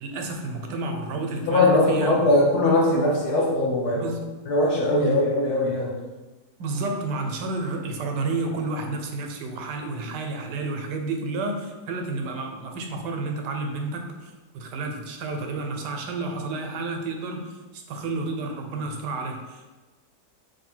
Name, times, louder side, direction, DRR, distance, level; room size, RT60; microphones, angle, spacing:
voice 1, 0.0-2.3 3.9-4.3 4.9-5.2 6.6-19.7, right 3 dB, 85° right, 4 dB, 1.2 m, -31 dB
voice 2, 1.5-4.0 4.5-5.9, left 2 dB, 70° left, -3 dB, 1.3 m, -20 dB
3.3 x 2.6 x 4.2 m, 1.2 s
omnidirectional pair, 1.8 m